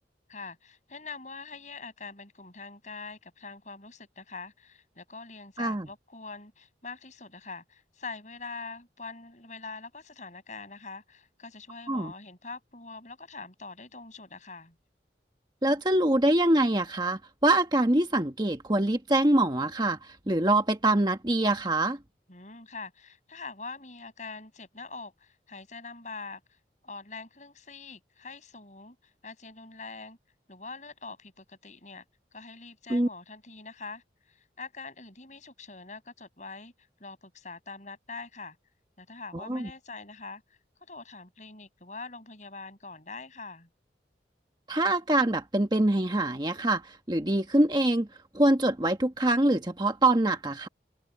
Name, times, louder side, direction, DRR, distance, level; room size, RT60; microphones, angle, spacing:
voice 1, 0.3-14.8 22.3-26.6 26.8-30.2 30.5-32.0 32.3-36.7 37.0-38.6 39.0-40.4 40.9-43.7, left 4 dB, 45° left, 6.8 m, -44 dB
voice 2, 15.6-22.0 32.9-33.1 39.3-39.7 44.7-48.1 48.3-50.7, right 1 dB, 25° right, 1.3 m, -24 dB
head